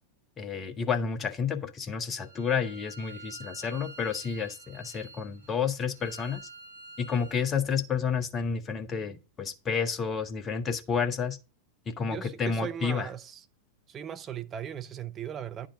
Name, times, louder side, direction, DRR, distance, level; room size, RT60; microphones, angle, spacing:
voice 1, 0.4-6.4 7.0-11.4 11.9-13.1, left 6 dB, 25° left, 0.8 m, -30 dB
Bowed string instrument, 2.1-7.5, right 3 dB, 75° right, 1.5 m, -48 dB
voice 2, 12.1-13.4 13.9-15.7, right 9 dB, 25° right, 0.5 m, -38 dB
10.0 x 3.7 x 3.8 m
figure-of-eight pair, 90°, 0 cm